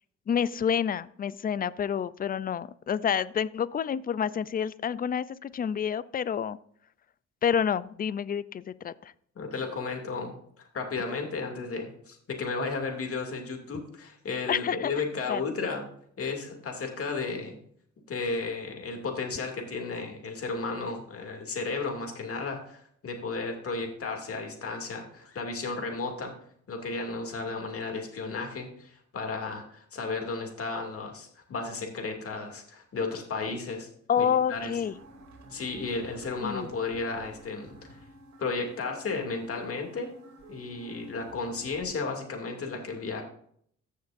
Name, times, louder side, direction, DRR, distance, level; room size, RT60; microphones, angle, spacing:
voice 1, 0.3-6.6 7.4-8.9 14.5-14.9 15.3-15.5 34.1-34.9 36.4-36.7, left 8 dB, 30° left, 18 dB, 0.4 m, -28 dB
voice 2, 9.4-15.9 16.2-17.6 18.1-26.3 26.7-33.9 34.2-34.7 35.5-37.7 38.4-40.1 40.5-43.2, left 4 dB, 50° left, 3 dB, 2.5 m, -34 dB
sound 1, 34.1-41.8, right 1 dB, 65° right, 2.4 m, -51 dB
15.0 x 6.5 x 2.6 m, 0.64 s
cardioid pair, 90°, 30 cm